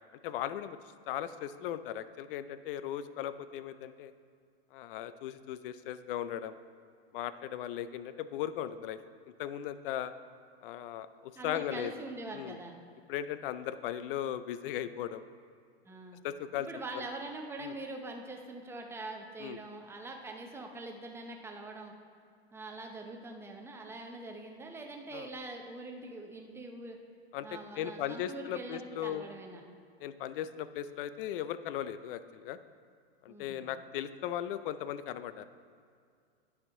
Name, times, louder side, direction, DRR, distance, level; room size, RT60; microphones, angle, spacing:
voice 1, 0.2-0.8 1.1-4.1 4.7-6.6 7.1-9.0 9.4-10.1 10.6-11.9 12.3-12.6 13.1-15.2 16.2-16.7 16.9-17.0 17.6-17.8 19.4-19.6 25.1-25.3 27.3-29.2 30.0-32.6 33.2-35.4, left 11 dB, 60° left, 13 dB, 0.5 m, -37 dB
voice 2, 11.3-12.8 15.8-16.2 16.5-21.9 22.5-27.0 27.4-29.6 33.3-33.7, right 2 dB, 10° right, 2 dB, 0.7 m, -43 dB
9.4 x 5.7 x 4.7 m, 2.2 s
hypercardioid pair, 130°, 32 cm